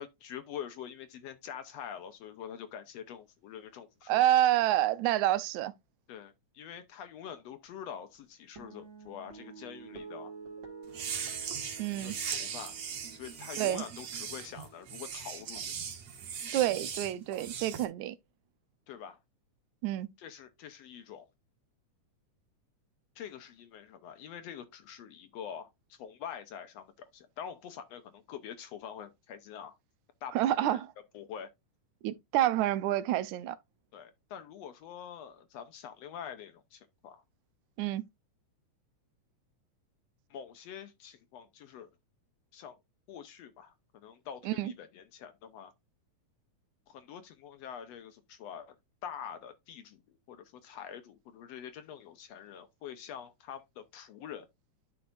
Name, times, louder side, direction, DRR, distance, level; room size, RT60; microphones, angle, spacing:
voice 1, 0.0-4.4 6.1-10.3 12.0-12.8 13.1-15.7 18.9-19.2 20.2-21.3 23.1-29.8 30.2-30.8 31.1-31.5 33.9-37.2 40.3-41.9 42.5-42.8 43.1-45.7 46.9-48.7 49.0-54.5, left 8 dB, 70° left, 1.7 m, -45 dB
voice 2, 4.1-5.7 11.8-12.2 13.6-13.8 16.5-18.2 19.8-20.1 30.4-30.9 32.0-33.6 37.8-38.0 44.5-44.7, right 13 dB, 75° right, 1.9 m, -28 dB
sound 1, 8.6-15.1, right 5 dB, 40° right, 2.4 m, -50 dB
sound 2, 10.9-17.9, right 7 dB, 60° right, 2.7 m, -39 dB
11.5 x 5.4 x 2.5 m
omnidirectional pair, 3.6 m